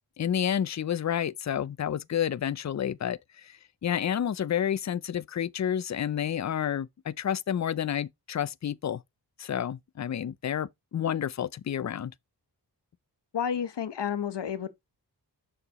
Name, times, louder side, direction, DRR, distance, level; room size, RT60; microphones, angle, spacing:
voice 1, 0.2-9.0 9.4-12.1, left 9 dB, 45° left, 0.5 m, -30 dB
voice 2, 13.3-14.7, left 8 dB, 80° left, 1.1 m, -30 dB
6.8 x 6.6 x 3.0 m
cardioid pair, 50°, 41 cm